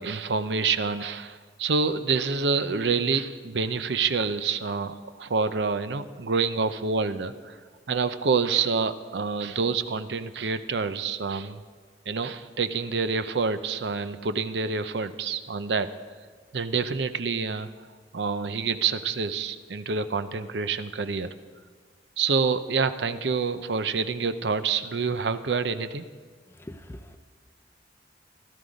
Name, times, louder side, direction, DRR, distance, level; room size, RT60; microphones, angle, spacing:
voice 1, 0.0-7.6 7.9-11.6 12.1-15.9 16.5-17.7 18.1-21.3 22.2-26.0, right 5 dB, 75° right, 11 dB, 0.6 m, -27 dB
voice 2, 26.6-27.2, left 1 dB, 15° left, 8 dB, 0.5 m, -42 dB
16.5 x 12.5 x 5.2 m, 1.5 s
head